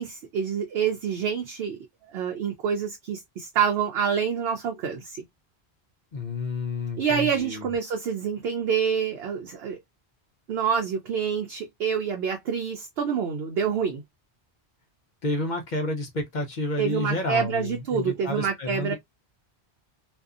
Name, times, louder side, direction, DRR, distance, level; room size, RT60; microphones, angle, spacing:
voice 1, 0.0-1.8 2.1-5.2 7.0-9.8 10.5-14.0 16.8-18.9, right 7 dB, 75° right, 0.8 m, -27 dB
voice 2, 6.1-7.7 15.2-18.9, left 2 dB, 50° left, 0.7 m, -30 dB
2.6 x 2.3 x 2.3 m
omnidirectional pair, 1.1 m